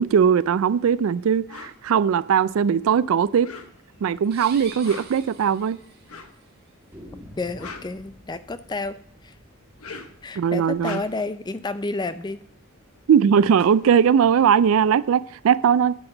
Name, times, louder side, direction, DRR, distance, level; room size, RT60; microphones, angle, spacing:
voice 1, 0.0-3.5 4.0-5.8 10.4-11.0 13.1-15.9, right 7 dB, 65° right, 0.3 m, -19 dB
sound 1, 1.5-1.8 3.3-4.0 4.7-5.3 6.1-6.4 7.3-8.6 9.6-10.3 10.7-11.4 12.9-13.0 13.2-14.9, left 4 dB, 75° left, 1.0 m, -41 dB
sound 2, 4.2-4.3 4.6-4.7 5.0-5.1 5.7-6.2 6.9-11.7, equal, 10° right, 1.3 m, -49 dB
sound 3, 4.2-6.2, right 6 dB, 45° right, 1.7 m, -43 dB
voice 2, 7.4-8.9 9.2-9.3 10.2-12.4, left 3 dB, 20° left, 0.4 m, -30 dB
9.8 x 7.9 x 3.8 m
head